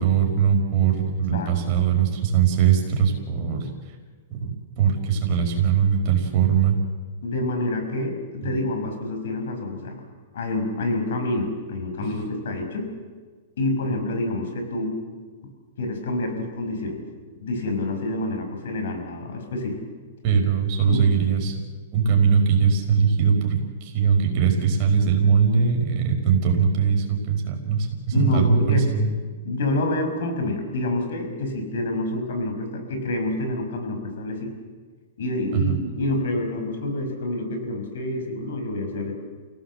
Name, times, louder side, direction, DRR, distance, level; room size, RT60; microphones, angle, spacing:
voice 1, 0.0-3.7 4.3-6.8 8.4-8.6 20.2-21.5 21.9-29.1 35.5-35.8, right 6 dB, 35° right, 3 dB, 4.9 m, -21 dB
voice 2, 7.2-10.0 10.3-12.9 13.6-15.0 15.8-17.0 17.4-19.8 20.9-21.0 28.1-28.9 29.4-34.5 35.2-39.1, left 2 dB, 70° left, 5 dB, 6.1 m, -27 dB
30.0 x 17.5 x 7.8 m, 1.5 s
hypercardioid pair, 160°, 0 cm